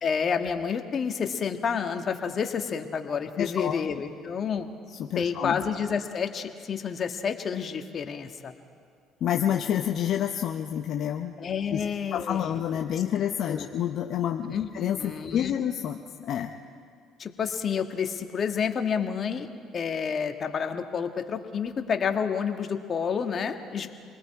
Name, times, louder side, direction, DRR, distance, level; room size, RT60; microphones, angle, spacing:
voice 1, 0.0-4.7 5.2-8.5 11.4-12.5 13.5-13.7 14.5-14.7 15.0-15.5 17.2-19.5 19.7-23.9, left 6 dB, 45° left, 5 dB, 1.6 m, -29 dB
voice 2, 3.4-3.8 5.0-5.6 9.2-11.3 11.7-11.8 12.1-16.5, left 10 dB, 65° left, 3 dB, 0.9 m, -28 dB
27.5 x 20.0 x 4.8 m, 2.2 s
supercardioid pair, 75°, 0 cm